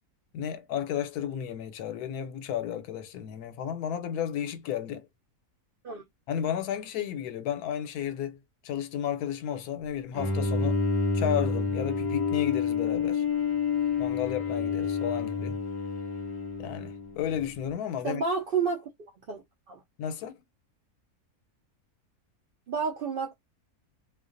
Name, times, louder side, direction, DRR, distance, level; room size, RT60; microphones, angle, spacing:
voice 1, 0.3-5.1 6.3-8.4 8.6-10.8 11.1-13.2 14.0-15.6 16.6-18.2 20.0-20.4, left 9 dB, 85° left, 1.1 m, -33 dB
Bowed string instrument, 10.1-17.4, left 5 dB, 25° left, 0.5 m, -29 dB
voice 2, 18.0-18.9 19.3-19.8 22.7-23.3, right 5 dB, 75° right, 0.5 m, -30 dB
2.4 x 2.2 x 2.4 m
omnidirectional pair, 1.6 m